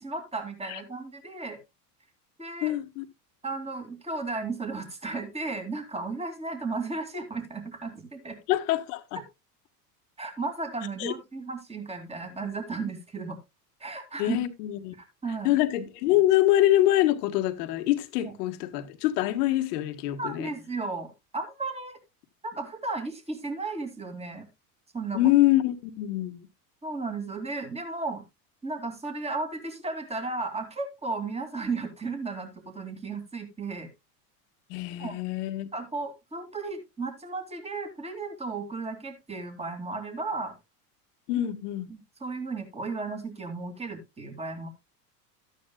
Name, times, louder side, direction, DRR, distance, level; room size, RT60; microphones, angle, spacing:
voice 1, 0.0-1.6 2.4-2.7 3.4-8.4 10.2-13.4 13.8-14.4 15.0-15.6 18.2-18.3 20.2-22.0 22.4-24.5 24.9-25.2 26.8-28.2 28.6-33.9 35.0-35.1 35.7-40.6 41.9-44.7, right 3 dB, 15° right, 2.6 m, -34 dB
voice 2, 2.6-3.1 8.5-9.2 11.0-11.1 14.2-14.9 15.4-20.5 25.1-26.5 34.7-35.7 41.3-41.9, left 14 dB, 75° left, 1.5 m, -25 dB
13.0 x 9.3 x 2.3 m
hypercardioid pair, 100°, 48 cm